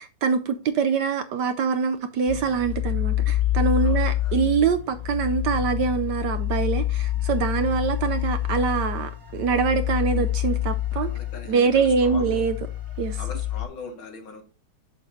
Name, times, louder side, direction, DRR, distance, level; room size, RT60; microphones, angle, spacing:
voice 1, 0.0-11.1 11.5-12.6 13.0-13.2, right 6 dB, 70° right, 1.1 m, -24 dB
sound 1, 2.3-13.7, left 14 dB, 15° right, 1.1 m, -27 dB
voice 2, 3.8-4.4 9.5-9.6 10.1-10.2 10.9-12.4 13.2-14.4, left 4 dB, 75° left, 2.5 m, -41 dB
7.2 x 6.7 x 2.7 m
omnidirectional pair, 2.2 m